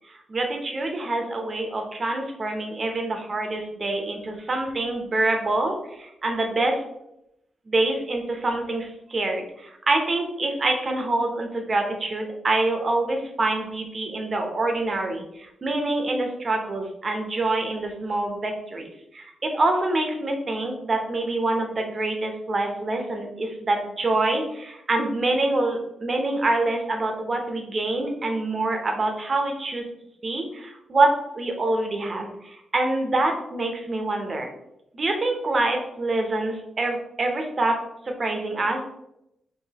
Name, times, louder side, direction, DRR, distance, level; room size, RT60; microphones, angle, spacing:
voice 1, 0.1-6.8 7.7-29.8 30.2-34.5 34.9-37.8 38.2-38.8, right 2 dB, 45° right, 3 dB, 0.9 m, -26 dB
4.7 x 2.6 x 3.0 m, 0.83 s
cardioid pair, 60°, 0 cm